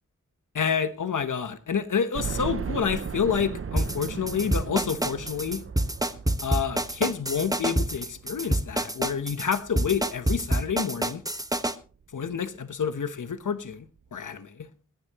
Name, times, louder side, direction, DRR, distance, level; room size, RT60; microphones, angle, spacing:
voice 1, 0.5-5.6 6.4-11.2 12.1-13.8 14.1-14.7, left 7 dB, 70° left, 1.1 m, -28 dB
sound 1, 2.1-11.1 11.5-11.6 12.0-12.1 13.3-13.4 13.7-13.8, right 6 dB, 45° right, 0.6 m, -38 dB
sound 2, 3.8-11.7, right 1 dB, 10° right, 1.3 m, -27 dB
21.5 x 10.0 x 3.0 m
cardioid pair, 50°, 32 cm